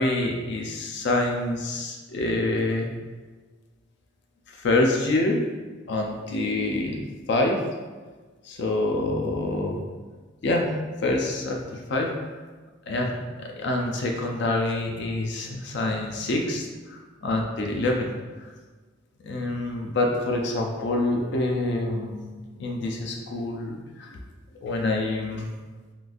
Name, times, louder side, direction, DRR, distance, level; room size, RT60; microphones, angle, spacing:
voice 1, 0.0-2.9 4.5-5.4 5.9-7.0 7.3-7.6 8.4-9.8 10.4-10.7 11.0-12.1 12.9-16.6 16.9-18.1 18.4-18.5 19.2-22.2 22.6-24.2 24.6-25.5, left 2 dB, 60° left, 1 dB, 0.4 m, -26 dB
3.7 x 2.4 x 2.4 m, 1.4 s
head